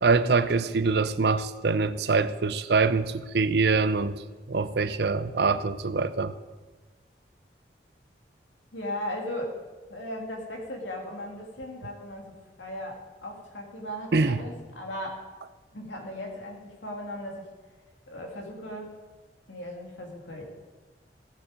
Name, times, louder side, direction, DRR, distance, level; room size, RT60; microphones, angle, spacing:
voice 1, 0.0-4.2 4.5-6.3 14.1-14.4, right 4 dB, 60° right, 13 dB, 0.5 m, -24 dB
voice 2, 8.7-9.6 9.9-15.2 15.7-17.5 18.1-18.9 19.5-20.4, left 1 dB, 85° left, 0 dB, 2.6 m, -37 dB
16.5 x 7.1 x 5.2 m, 1.3 s
head